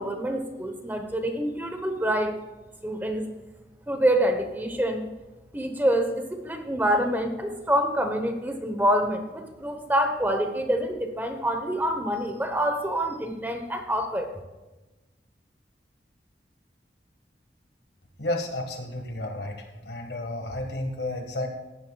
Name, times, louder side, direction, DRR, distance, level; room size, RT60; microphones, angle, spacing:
voice 1, 0.0-2.4 2.8-3.3 3.9-5.1 5.5-14.3, right 1 dB, 10° right, 6 dB, 1.0 m, -26 dB
voice 2, 18.2-21.5, left 1 dB, 75° left, 4 dB, 1.6 m, -32 dB
15.5 x 10.5 x 2.3 m, 1.1 s
head